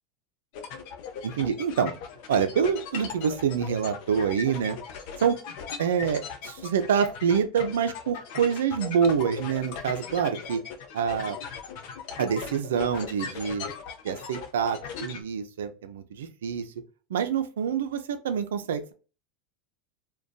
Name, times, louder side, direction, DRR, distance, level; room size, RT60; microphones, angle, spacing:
sound 1, 0.5-15.2, left 6 dB, 65° left, 0.5 m, -39 dB
voice 1, 1.2-2.0 2.3-4.8 5.2-5.4 5.8-10.6 10.9-11.4 12.2-13.7 14.0-16.7 17.1-18.9, right 7 dB, 90° right, 8 dB, 0.4 m, -26 dB
2.5 x 2.2 x 2.2 m, 0.35 s
hypercardioid pair, 105°, 0 cm